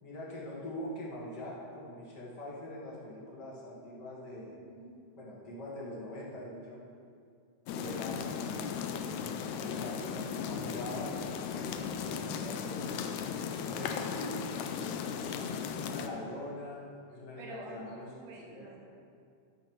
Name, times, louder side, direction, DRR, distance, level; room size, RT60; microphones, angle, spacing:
voice 1, 0.0-4.6 5.2-6.8 7.7-8.4 9.6-11.2 11.5-13.4 13.7-14.3 14.7-16.8 17.1-18.8, left 1 dB, 40° left, -4 dB, 1.6 m, -43 dB
voice 2, 4.5-5.0 17.4-18.8, right 2 dB, 70° right, 0 dB, 1.8 m, -48 dB
sound 1, 7.7-16.1, left 6 dB, 80° left, 1.7 m, -36 dB
13.0 x 5.9 x 4.6 m, 2.3 s
omnidirectional pair, 3.7 m